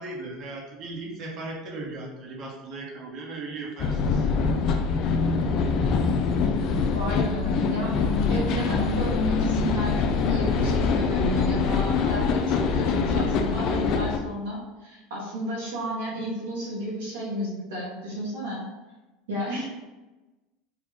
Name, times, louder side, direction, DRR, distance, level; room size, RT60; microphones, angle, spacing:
voice 1, 0.0-4.3, right 2 dB, 50° right, -1 dB, 1.0 m, -37 dB
sound 1, 3.8-14.2, left 5 dB, 50° left, 0.4 m, -24 dB
voice 2, 6.9-8.0 8.3-18.7 19.3-19.7, equal, 80° right, -4 dB, 1.0 m, -32 dB
3.5 x 2.4 x 3.6 m, 1.1 s
hypercardioid pair, 85°, 0 cm